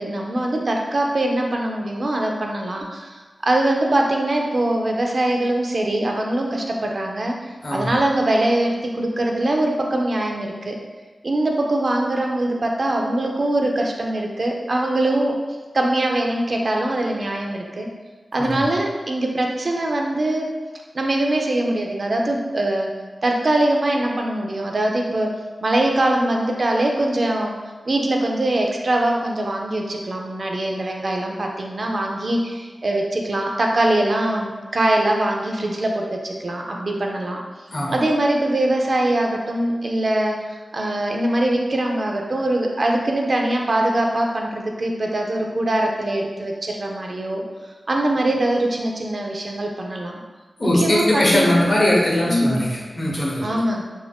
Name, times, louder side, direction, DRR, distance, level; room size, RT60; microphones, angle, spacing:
voice 1, 0.0-7.3 7.7-10.8 11.2-15.4 15.7-17.9 18.3-20.5 20.9-22.9 23.2-27.6 27.9-37.4 37.9-40.4 40.7-47.4 47.9-50.2 50.6-51.6 52.2-52.6 53.4-53.8, right 1 dB, 55° right, 1 dB, 0.4 m, -22 dB
voice 2, 50.6-53.6, left 1 dB, 55° left, -3 dB, 0.7 m, -20 dB
2.5 x 2.1 x 3.3 m, 1.3 s
wide cardioid pair, 95°, 0 cm